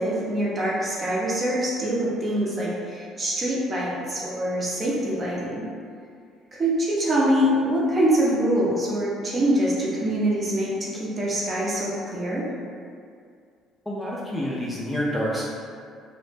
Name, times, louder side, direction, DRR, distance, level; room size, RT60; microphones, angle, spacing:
voice 1, 0.0-5.6 6.5-12.5, right 1 dB, 35° right, -5 dB, 0.6 m, -24 dB
voice 2, 13.9-15.5, equal, 10° left, -5 dB, 0.4 m, -28 dB
2.0 x 2.0 x 3.1 m, 2.3 s
supercardioid pair, 85°, 0 cm